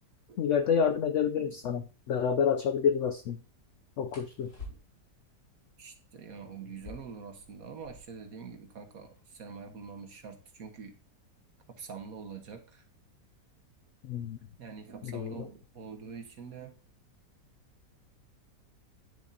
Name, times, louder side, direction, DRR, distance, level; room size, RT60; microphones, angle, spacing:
voice 1, 0.4-3.4 4.0-4.5 14.0-14.4 15.0-15.4, left 7 dB, 90° left, 9 dB, 0.6 m, -28 dB
sound 1, 1.4-1.6 4.1-5.2 6.6-8.3 8.6-8.7 8.9-9.5 10.1-12.7 13.7-14.0 14.4-14.8 15.2-15.9, left 2 dB, 50° left, 4.5 m, -51 dB
voice 2, 5.8-10.9 11.7-12.8 14.6-16.7, right 6 dB, 55° right, 5 dB, 1.6 m, -45 dB
9.9 x 7.0 x 2.7 m, 0.37 s
omnidirectional pair, 1.8 m